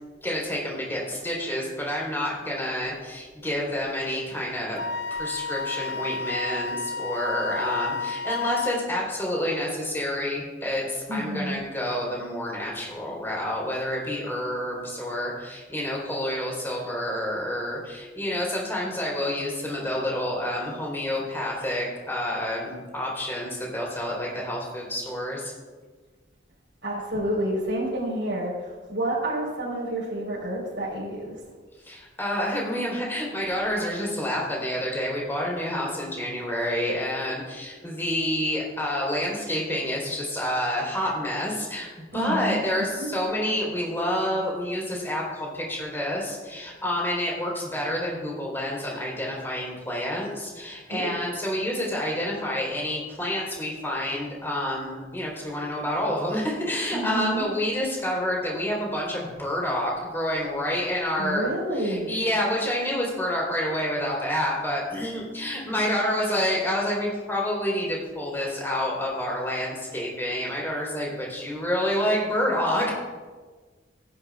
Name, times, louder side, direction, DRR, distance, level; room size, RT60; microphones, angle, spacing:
voice 1, 0.2-4.8 5.1-25.5 31.8-41.9 42.1-61.5 61.7-72.9, left 1 dB, 10° left, -4 dB, 3.7 m, -28 dB
Wind instrument woodwind instrument, 4.8-8.8, left 4 dB, 60° left, 0.5 m, -31 dB
voice 2, 11.1-11.6 26.8-31.3 42.1-42.6 43.0-43.1 50.9-51.2 56.9-57.5 61.2-62.1, right 1 dB, 80° right, -9 dB, 4.1 m, -29 dB
19.5 x 10.5 x 2.4 m, 1.4 s
head